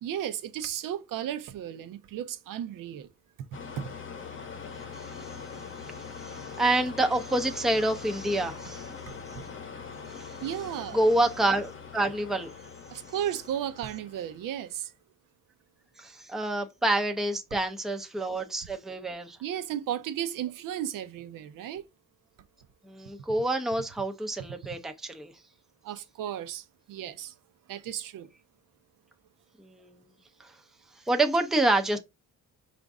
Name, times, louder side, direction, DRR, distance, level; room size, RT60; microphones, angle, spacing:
voice 1, 0.0-3.1 3.4-3.5 3.8-3.9 9.1-9.4 10.4-11.0 12.9-14.9 19.4-21.8 25.8-27.3 27.7-28.3, right 10 dB, 80° right, 0.6 m, -34 dB
sound 1, 3.5-14.7, left 6 dB, 40° left, 0.8 m, -42 dB
voice 2, 4.9-5.3 5.8-8.9 10.1-10.4 10.9-12.5 16.0-19.4 22.8-25.3 29.6-30.1 30.4-30.5 31.1-32.0, right 2 dB, ahead, 0.5 m, -28 dB
5.0 x 2.5 x 3.4 m
cardioid pair, 150°, 33 cm